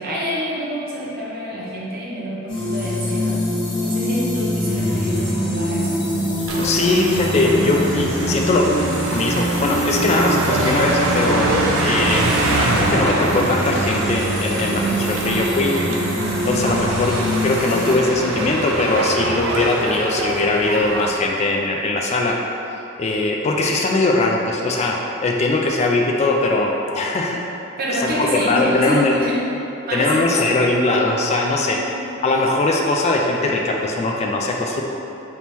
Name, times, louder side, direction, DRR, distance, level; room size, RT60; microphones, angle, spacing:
voice 1, 0.0-3.4 3.8-5.9 27.8-29.4 29.9-30.5 31.6-32.0, equal, 50° right, -6 dB, 0.9 m, -26 dB
sound 1, 2.5-17.9, equal, 65° left, 1.1 m, -24 dB
sound 2, 6.5-21.1, right 2 dB, 85° right, 0.5 m, -25 dB
voice 2, 6.6-8.7 9.1-12.3 12.6-15.7 16.4-17.2 17.4-22.4 23.0-27.4 28.0-29.2 29.9-31.8 32.2-34.8, left 2 dB, 35° left, 0 dB, 0.3 m, -20 dB
3.6 x 2.9 x 4.2 m, 2.8 s
head